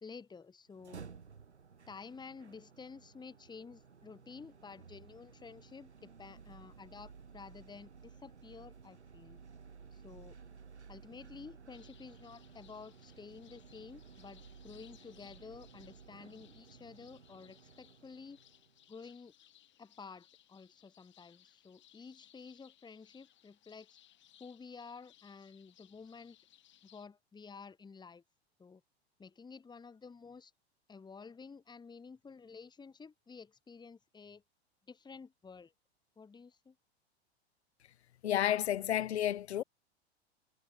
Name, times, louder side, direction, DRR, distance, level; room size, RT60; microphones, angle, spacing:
voice 1, 0.0-1.0 1.9-9.4 9.9-10.4 10.9-18.4 18.9-19.3 19.8-23.9 24.4-26.4 26.9-28.2 28.6-28.8 29.2-30.5 30.9-34.4 34.9-35.7 36.2-36.7, left 5 dB, 15° left, 1.8 m, -51 dB
sound 1, 0.7-18.8, right 5 dB, 90° right, 2.7 m, -56 dB
sound 2, 11.7-27.1, left 12 dB, 35° left, 7.1 m, -65 dB
voice 2, 38.2-39.6, left 11 dB, 75° left, 1.0 m, -31 dB
hypercardioid pair, 95°, 33 cm